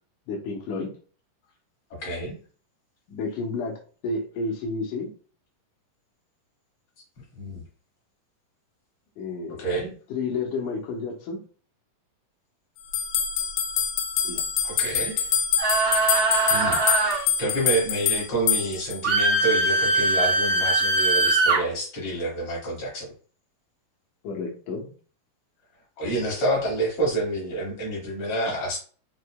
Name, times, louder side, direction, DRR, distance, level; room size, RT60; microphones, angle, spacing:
voice 1, 0.3-0.9 3.1-5.1 9.2-9.6 10.1-11.4 14.2-14.4 24.2-24.9 28.5-28.6, left 3 dB, 70° left, -3 dB, 2.3 m, -31 dB
voice 2, 1.9-2.4 7.4-7.6 9.6-9.9 14.6-15.3 16.5-23.1 26.0-28.8, right 1 dB, 50° left, -3 dB, 2.5 m, -28 dB
sound 1, 12.9-19.0, left 8 dB, 85° left, 2.4 m, -25 dB
sound 2, 15.6-17.2 19.0-21.6, right 2 dB, 70° right, 0.9 m, -21 dB
6.6 x 2.6 x 2.2 m, 0.40 s
omnidirectional pair, 3.9 m